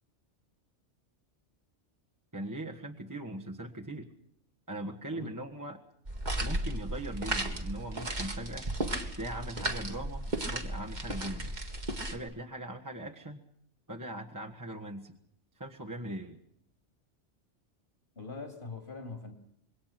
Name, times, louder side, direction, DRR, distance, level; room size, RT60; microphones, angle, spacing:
voice 1, 2.3-4.1 4.7-5.8 6.4-8.7 9.1-11.5 12.1-13.4 13.9-15.1 15.5-16.4, right 1 dB, 15° right, -1 dB, 1.6 m, -40 dB
sound 1, 6.1-12.2, right 1 dB, 40° right, 2.2 m, -35 dB
voice 2, 18.1-19.3, left 3 dB, 55° left, 4 dB, 3.4 m, -42 dB
26.5 x 22.5 x 6.0 m, 0.71 s
omnidirectional pair, 1.2 m